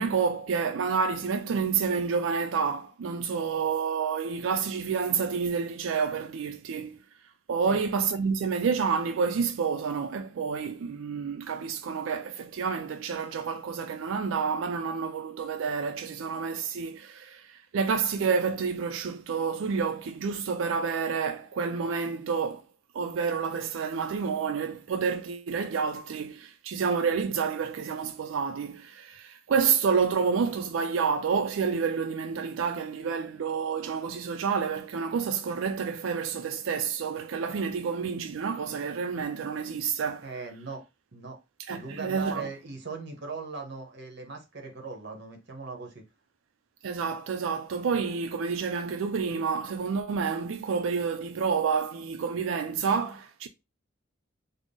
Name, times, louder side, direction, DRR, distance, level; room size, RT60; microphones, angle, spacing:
voice 1, 0.0-7.0 7.5-17.4 17.7-22.6 22.9-40.3 41.7-42.5 46.8-53.5, right 5 dB, 80° right, 0.4 m, -29 dB
voice 2, 40.2-40.8 41.1-41.4 41.7-46.0, right 4 dB, 60° right, 1.0 m, -39 dB
3.7 x 2.0 x 3.7 m
head